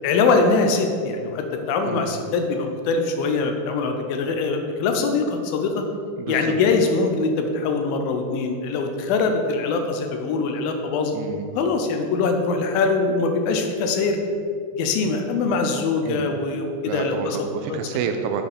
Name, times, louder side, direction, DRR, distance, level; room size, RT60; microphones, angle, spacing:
voice 1, 0.0-5.9 6.3-11.1 11.6-14.4 14.7-17.4, left 4 dB, 80° left, 4 dB, 2.2 m, -23 dB
voice 2, 6.2-6.5 11.1-11.5 16.0-16.2 16.9-18.4, right 6 dB, 80° right, 6 dB, 2.4 m, -29 dB
9.2 x 5.9 x 3.5 m, 2.3 s
omnidirectional pair, 4.8 m